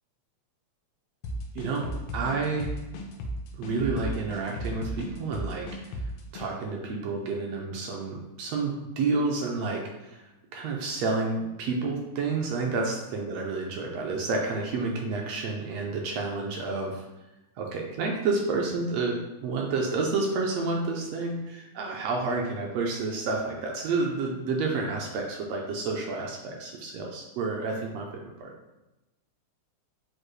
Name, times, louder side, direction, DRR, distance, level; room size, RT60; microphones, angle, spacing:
sound 1, 1.2-6.5, equal, 85° left, 1.3 m, -35 dB
voice 1, 1.5-2.7 3.6-5.7 6.3-10.3 10.5-17.0 17.6-19.1 19.4-28.5, right 3 dB, 80° right, 0 dB, 1.5 m, -30 dB
6.4 x 2.3 x 3.1 m, 0.99 s
omnidirectional pair, 3.3 m